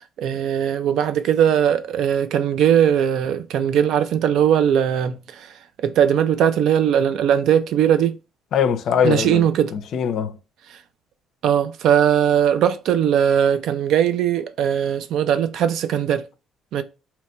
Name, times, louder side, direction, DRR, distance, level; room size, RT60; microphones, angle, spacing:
voice 1, 0.2-5.5 5.8-8.2 9.0-9.7 11.4-16.3 16.7-16.8, right 9 dB, 70° right, 0.3 m, -19 dB
voice 2, 8.5-10.4, left 7 dB, 60° left, 0.4 m, -22 dB
2.9 x 2.2 x 4.2 m
cardioid pair, 150°, 0 cm